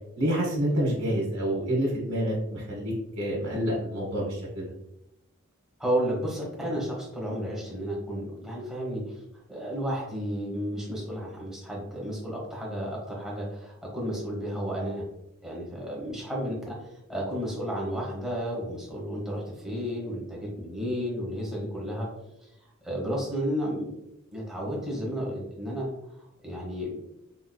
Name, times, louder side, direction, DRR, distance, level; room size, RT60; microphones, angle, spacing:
voice 1, 0.2-4.7, equal, 85° right, -5 dB, 1.0 m, -28 dB
voice 2, 5.8-9.2 9.5-15.0 15.4-16.8 17.1-22.1 22.8-24.0 24.3-25.9 26.4-27.0, equal, ahead, -4 dB, 1.0 m, -32 dB
3.9 x 2.7 x 2.2 m, 0.86 s
head